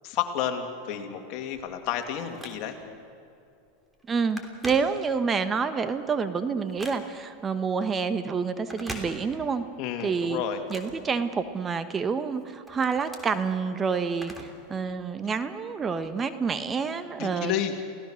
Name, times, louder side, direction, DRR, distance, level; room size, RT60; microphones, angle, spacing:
voice 1, 0.0-2.8 9.8-10.6 17.2-17.8, left 9 dB, 55° left, 5 dB, 2.6 m, -31 dB
Telephone, 1.5-3.0 3.5-3.7 3.9-5.4 5.9-7.4 8.6-9.7 10.0-11.7 12.2-14.7 15.0-15.1 16.0-16.1, right 1 dB, 10° right, 3.2 m, -43 dB
voice 2, 4.1-9.6 10.0-10.4 10.7-14.3 14.7-17.5, right 5 dB, 25° right, 10 dB, 1.2 m, -28 dB
28.5 x 17.5 x 6.5 m, 2.6 s
hypercardioid pair, 105°, 0 cm